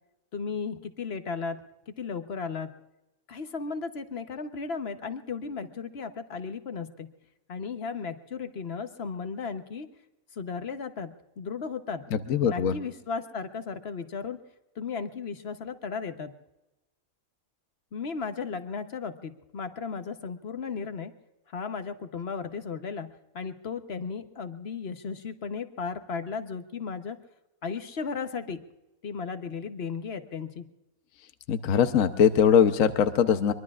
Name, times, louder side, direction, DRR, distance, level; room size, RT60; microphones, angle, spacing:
voice 1, 0.3-2.7 3.3-7.1 7.5-9.9 10.3-12.0 12.4-14.4 14.8-16.3 17.9-21.1 21.5-27.2 27.6-28.6 29.0-30.7, left 5 dB, 50° left, 8 dB, 1.1 m, -35 dB
voice 2, 12.1-12.7 31.5-33.5, left 8 dB, 70° left, 9 dB, 1.2 m, -21 dB
24.0 x 22.5 x 2.4 m, 0.95 s
omnidirectional pair, 1.5 m